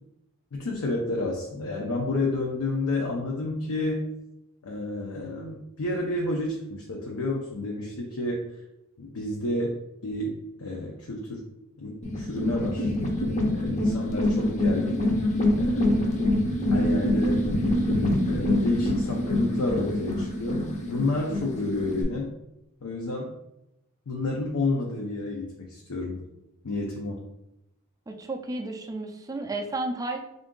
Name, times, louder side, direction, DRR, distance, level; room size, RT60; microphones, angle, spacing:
voice 1, 0.5-4.1 4.6-8.4 9.0-9.8 10.0-11.4 11.8-12.9 13.4-15.1 15.5-16.0 16.7-17.4 18.3-22.3 22.8-23.3 24.1-26.2 26.6-27.2, left 2 dB, 75° left, -1 dB, 0.6 m, -30 dB
sound 1, 12.0-22.0, left 1 dB, 35° left, 0.6 m, -25 dB
voice 2, 28.1-30.2, right 2 dB, 15° right, 3 dB, 0.3 m, -32 dB
3.5 x 2.6 x 3.7 m, 0.88 s
head